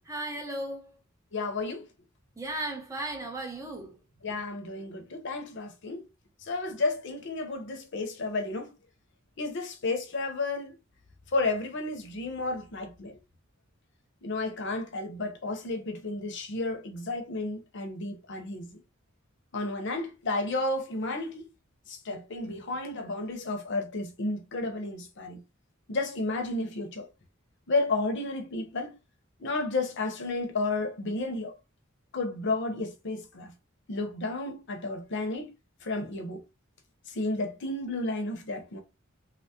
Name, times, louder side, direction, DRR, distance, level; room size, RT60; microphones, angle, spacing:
voice 1, 0.1-0.9 2.4-4.0, right 1 dB, 15° right, 0.7 m, -35 dB
voice 2, 1.3-1.8 4.2-6.0 6.4-8.7 9.4-10.7 11.3-13.2 14.2-18.8 19.5-21.4 21.9-25.4 25.9-27.1 27.7-29.0 29.4-31.5 32.1-33.5 33.9-35.5 35.8-36.4 37.1-38.8, left 2 dB, 60° left, 0.7 m, -32 dB
3.4 x 2.0 x 2.7 m
head